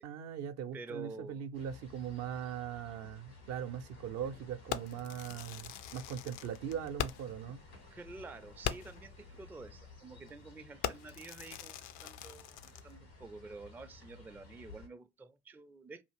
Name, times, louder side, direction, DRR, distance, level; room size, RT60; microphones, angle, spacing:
voice 1, 0.0-7.6, right 8 dB, 60° right, 0.5 m, -40 dB
voice 2, 0.7-1.4 7.9-16.0, right 3 dB, 5° right, 0.3 m, -49 dB
sound 1, 1.5-14.9, left 3 dB, 90° left, 1.4 m, -55 dB
Fireworks, 4.7-7.4 7.8-7.9 8.2-8.3 8.6-9.1 9.7-9.9 10.2-10.5 10.8-12.9, left 10 dB, 65° left, 0.4 m, -41 dB
2.7 x 2.4 x 3.3 m
figure-of-eight pair, 50°, 30 cm